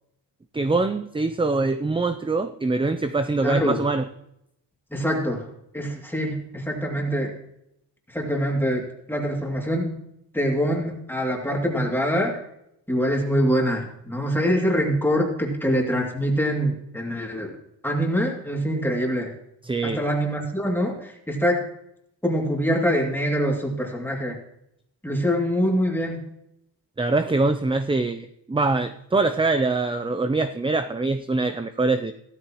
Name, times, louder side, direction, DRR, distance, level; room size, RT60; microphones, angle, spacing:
voice 1, 0.5-4.1 19.6-20.0 27.0-32.1, right 3 dB, 10° right, 10 dB, 0.4 m, -23 dB
voice 2, 3.4-3.8 4.9-5.5 5.7-7.3 8.1-9.9 10.3-12.4 12.9-17.5 17.8-19.3 19.8-21.6 22.2-24.4 25.0-26.2, equal, 5° left, 0 dB, 2.5 m, -24 dB
15.0 x 13.0 x 3.0 m, 0.79 s
wide cardioid pair, 95°, 45 cm